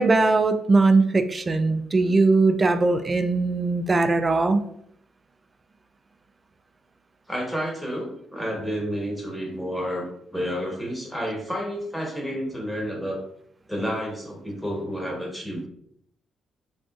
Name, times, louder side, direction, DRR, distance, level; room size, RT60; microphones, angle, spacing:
voice 1, 0.0-4.7, right 3 dB, 25° right, 9 dB, 0.3 m, -20 dB
voice 2, 7.3-13.2 13.7-15.7, equal, ahead, -2 dB, 1.2 m, -30 dB
3.7 x 2.6 x 2.3 m, 0.71 s
cardioid pair, 90°, 0 cm